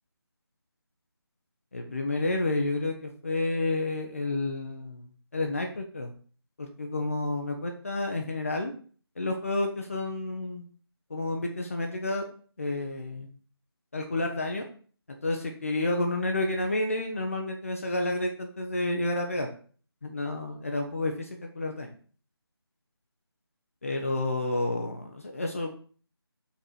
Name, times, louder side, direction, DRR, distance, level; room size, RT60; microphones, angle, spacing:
voice 1, 1.7-6.1 6.6-8.7 9.2-10.6 11.1-12.2 12.6-13.3 13.9-14.7 15.2-19.5 20.0-21.9 23.8-25.7, left 2 dB, 35° left, 3 dB, 0.7 m, -30 dB
5.4 x 4.6 x 4.2 m, 0.42 s
figure-of-eight pair, 170°, 13 cm